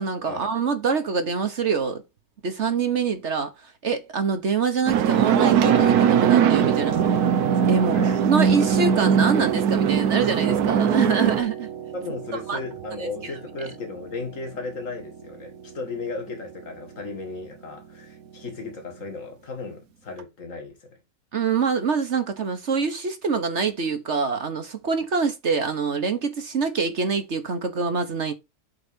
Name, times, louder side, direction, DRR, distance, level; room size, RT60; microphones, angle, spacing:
voice 1, 0.0-2.0 2.4-7.1 7.7-8.0 8.3-11.7 12.5-12.6 13.0-13.1 21.3-28.3, right 5 dB, 50° right, 1.3 m, -25 dB
sound 1, 4.9-11.4, right 8 dB, 85° right, 1.3 m, -20 dB
Piano, 5.4-19.1 20.2-20.3, right 7 dB, 70° right, 1.4 m, -32 dB
voice 2, 7.9-8.2 11.2-11.3 11.9-21.0, left 3 dB, 55° left, 2.4 m, -35 dB
8.0 x 4.0 x 5.2 m
omnidirectional pair, 1.6 m